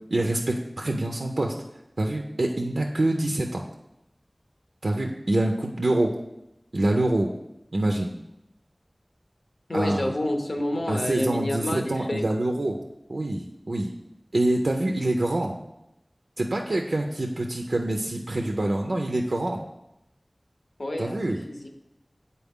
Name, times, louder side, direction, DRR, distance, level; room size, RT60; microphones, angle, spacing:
voice 1, 0.1-1.5 2.0-3.6 4.8-6.1 6.7-7.3 7.7-8.1 9.7-10.1 10.9-12.8 13.1-13.9 14.3-15.6 16.4-19.6 21.0-21.4, right 1 dB, 85° right, 2 dB, 0.4 m, -25 dB
voice 2, 9.7-12.2 20.8-21.2 21.5-21.7, left 1 dB, 75° left, 3 dB, 0.8 m, -28 dB
8.1 x 4.2 x 3.6 m, 0.88 s
wide cardioid pair, 45°, 0 cm